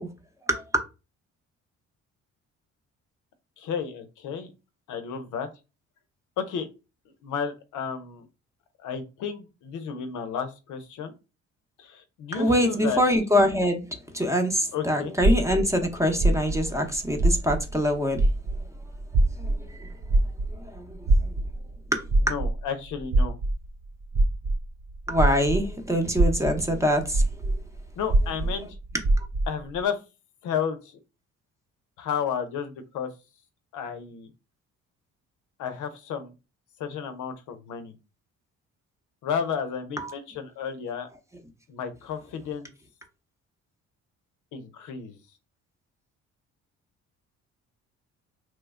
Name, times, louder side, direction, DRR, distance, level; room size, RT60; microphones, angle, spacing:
voice 1, 0.5-0.8 12.3-13.8 14.1-18.2 19.4-19.9 20.7-21.3 25.1-27.2 40.0-40.1, equal, 10° right, 0.7 m, -24 dB
voice 2, 3.6-4.5 4.9-5.5 6.4-6.7 7.2-8.3 8.8-11.1 11.8-13.0 14.7-15.1 22.2-23.3 28.0-28.7 29.5-30.0 30.4-31.0 32.0-33.1 33.7-34.3 35.6-36.3 36.8-38.0 39.2-41.1 41.7-42.7 44.5-45.2, left 7 dB, 80° left, 0.6 m, -32 dB
sound 1, 15.2-17.9 18.1-25.7 26.1-29.6, right 2 dB, 30° right, 0.4 m, -24 dB
3.1 x 2.1 x 3.5 m
cardioid pair, 90°, 30 cm